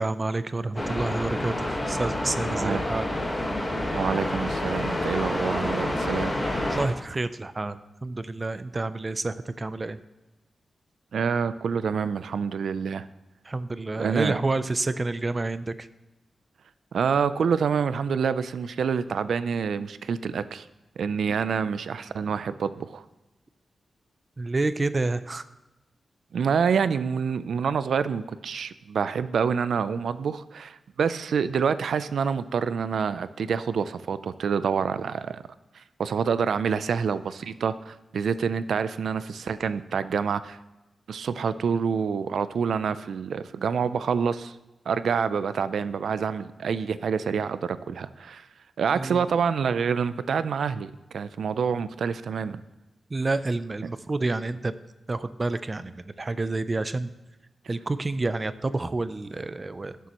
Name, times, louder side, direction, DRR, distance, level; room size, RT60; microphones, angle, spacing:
voice 1, 0.0-3.1 6.7-10.0 13.5-15.9 24.4-25.4 48.9-49.3 53.1-54.7 55.1-57.1 57.7-59.9, right 2 dB, 30° right, 13 dB, 0.5 m, -29 dB
sound 1, 0.8-6.9, left 1 dB, 20° left, 1.4 m, -28 dB
voice 2, 2.5-2.8 3.9-6.3 11.1-13.1 14.0-14.4 16.9-20.6 21.0-23.0 26.3-35.4 36.0-40.6 41.1-44.5 44.9-48.5 48.8-52.6, right 6 dB, 85° right, 14 dB, 0.4 m, -27 dB
17.5 x 6.9 x 3.0 m, 1.0 s
wide cardioid pair, 120°, 0 cm